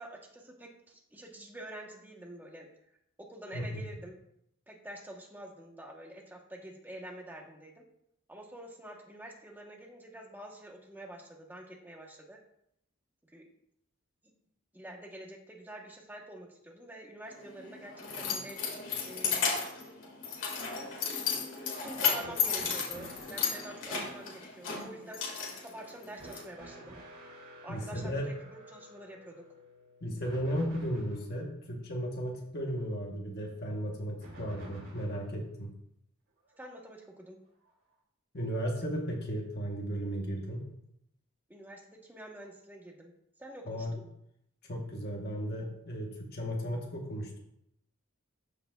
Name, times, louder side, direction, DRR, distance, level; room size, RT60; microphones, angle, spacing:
voice 1, 0.0-2.7 3.2-4.1 4.7-7.9 8.3-12.4 13.2-13.5 14.7-19.5 21.7-25.3 25.6-27.0 27.6-29.5 36.6-37.4 41.5-43.1 43.4-44.0, right 1 dB, 10° right, 1 dB, 1.0 m, -47 dB
voice 2, 3.5-3.9 27.7-28.3 30.0-35.7 38.3-40.7 43.7-44.0 44.6-47.4, equal, 55° left, 0 dB, 1.1 m, -35 dB
Keys jangling, 17.3-26.4, left 6 dB, 70° left, 2.0 m, -34 dB
sound 1, 22.2-23.6 26.2-31.3 34.2-35.3 36.5-36.6 37.7-37.8, right 1 dB, 70° right, 2.6 m, -50 dB
13.5 x 4.8 x 2.3 m, 0.77 s
head